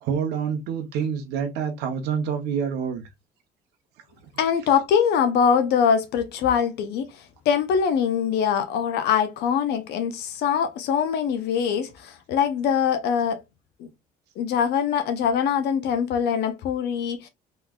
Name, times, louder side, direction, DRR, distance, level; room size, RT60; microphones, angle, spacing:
voice 1, 0.0-3.0, right 7 dB, 90° right, 0.8 m, -27 dB
voice 2, 4.4-13.4 13.8-13.9 14.4-17.3, left 7 dB, 75° left, 0.6 m, -23 dB
3.6 x 3.1 x 2.3 m
cardioid pair, 110°, 17 cm